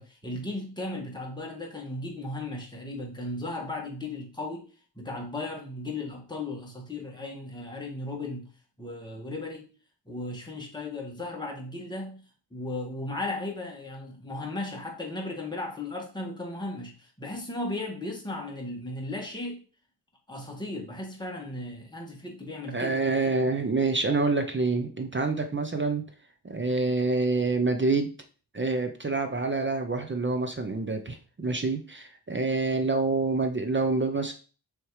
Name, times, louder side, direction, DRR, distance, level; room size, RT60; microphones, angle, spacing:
voice 1, 0.0-4.7 5.0-8.5 8.8-9.7 10.1-12.2 12.5-19.6 20.3-23.0, left 2 dB, 10° left, -1 dB, 1.6 m, -36 dB
voice 2, 22.7-26.0 26.4-28.1 28.5-34.3, right 3 dB, 25° right, 7 dB, 0.6 m, -27 dB
6.1 x 3.5 x 4.7 m, 0.37 s
wide cardioid pair, 155°, 43 cm